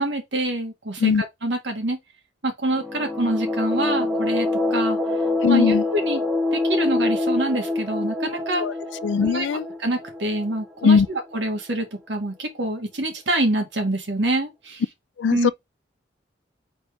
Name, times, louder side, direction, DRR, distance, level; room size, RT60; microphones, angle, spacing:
voice 1, 0.0-1.1 1.4-2.0 2.4-5.0 5.5-6.2 6.5-8.6 9.2-9.5 9.8-14.8 15.3-15.5, right 1 dB, 75° right, 1.6 m, -26 dB
sound 1, 2.7-11.3, left 2 dB, 5° right, 0.8 m, -25 dB
voice 2, 5.4-5.8 8.6-8.7 9.0-9.7 10.8-11.1 15.2-15.5, left 6 dB, 80° left, 0.3 m, -19 dB
3.9 x 3.7 x 3.4 m
head